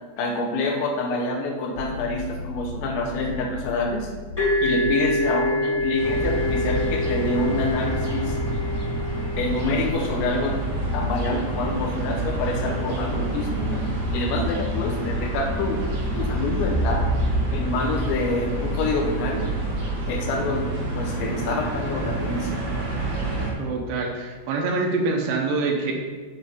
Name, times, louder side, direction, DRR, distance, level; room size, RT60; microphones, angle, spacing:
voice 1, 0.2-4.1 4.6-8.4 9.4-10.6 10.9-13.8 14.1-15.8 16.1-17.1 17.5-19.5 20.1-20.7 20.9-22.6, left 2 dB, 80° left, 1 dB, 3.0 m, -27 dB
sound 1, 1.8-17.4, left 2 dB, 60° left, 3.9 m, -33 dB
sound 2, 4.4-11.9, left 1 dB, 25° left, 0.7 m, -28 dB
sound 3, 6.0-23.5, right 1 dB, 55° right, 2.0 m, -28 dB
voice 2, 23.6-25.9, right 3 dB, 80° right, 1 dB, 3.2 m, -25 dB
7.1 x 7.0 x 4.1 m, 1.5 s
omnidirectional pair, 5.5 m